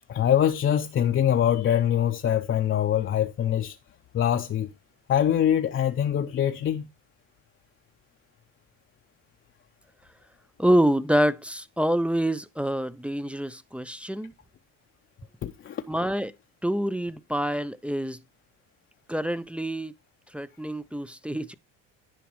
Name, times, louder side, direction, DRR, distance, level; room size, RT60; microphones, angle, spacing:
voice 1, 0.1-3.8 4.1-4.7 5.1-6.9 15.4-15.8, left 10 dB, 40° left, 0.6 m, -24 dB
voice 2, 10.6-14.3 15.9-16.3 16.6-18.2 19.1-19.9 20.3-21.5, right 1 dB, 5° right, 0.3 m, -26 dB
10.5 x 4.9 x 3.0 m
supercardioid pair, 90°, 33 cm